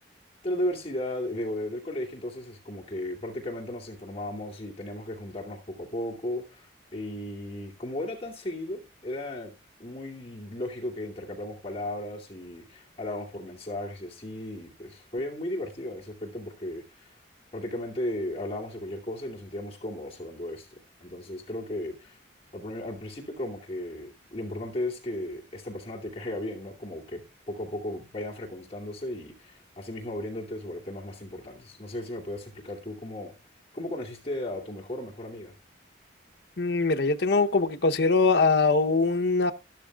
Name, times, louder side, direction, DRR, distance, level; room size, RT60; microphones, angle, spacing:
voice 1, 0.4-9.5 9.8-17.1 17.5-20.7 21.0-22.2 22.5-27.2 27.5-33.3 33.7-35.5, left 1 dB, 30° left, 2.5 m, -35 dB
voice 2, 36.6-39.5, left 3 dB, 55° left, 0.8 m, -22 dB
13.0 x 12.5 x 2.3 m
head